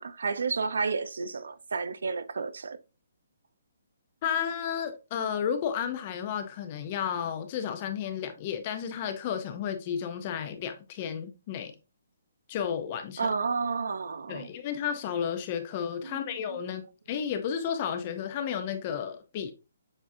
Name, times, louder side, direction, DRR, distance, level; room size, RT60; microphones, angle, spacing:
voice 1, 0.0-2.8 13.2-14.5 16.0-16.2 16.5-16.6, right 4 dB, 80° right, 0.5 m, -31 dB
voice 2, 4.2-11.7 12.5-13.3 14.3-19.5, left 8 dB, 25° left, 0.4 m, -32 dB
7.1 x 2.5 x 2.5 m
hypercardioid pair, 175°, 0 cm